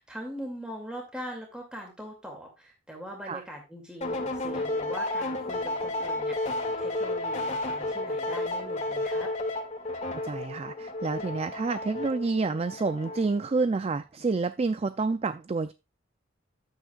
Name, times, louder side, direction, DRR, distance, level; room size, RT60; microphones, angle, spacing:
voice 1, 0.0-9.3, equal, 5° right, 2.3 m, -41 dB
sound 1, 4.0-13.4, left 2 dB, 35° left, 1.9 m, -32 dB
voice 2, 10.1-15.7, right 3 dB, 30° right, 0.3 m, -29 dB
12.0 x 8.6 x 2.3 m
head